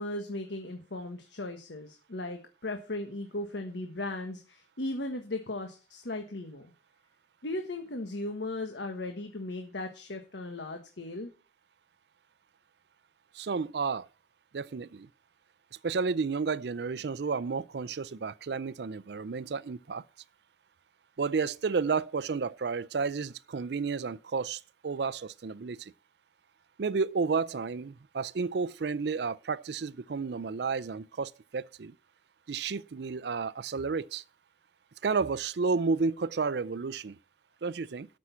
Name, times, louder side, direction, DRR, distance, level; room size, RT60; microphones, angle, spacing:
voice 1, 0.0-6.7 7.4-11.3, left 2 dB, 80° left, 1.4 m, -37 dB
voice 2, 13.3-14.1 14.5-15.1 15.8-20.0 21.2-25.9 26.8-31.9 32.5-34.2 35.0-37.2 37.6-38.1, right 4 dB, 65° right, 0.5 m, -31 dB
12.5 x 6.2 x 5.8 m
head